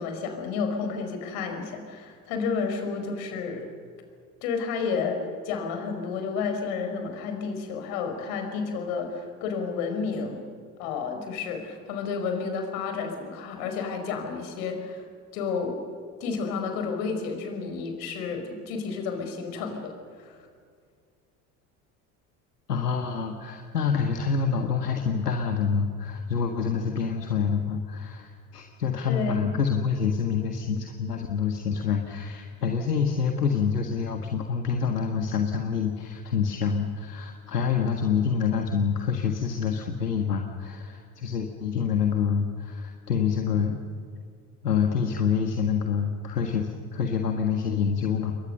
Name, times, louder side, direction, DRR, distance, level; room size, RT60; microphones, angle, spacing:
voice 1, 0.0-3.7 4.4-10.4 10.8-15.0 15.3-15.8 16.2-20.4 29.1-29.5, left 5 dB, 65° left, 5 dB, 5.1 m, -31 dB
voice 2, 22.7-43.8 44.6-48.3, left 6 dB, 85° left, 4 dB, 1.8 m, -27 dB
28.5 x 22.0 x 6.8 m, 2.1 s
figure-of-eight pair, 65°, 46 cm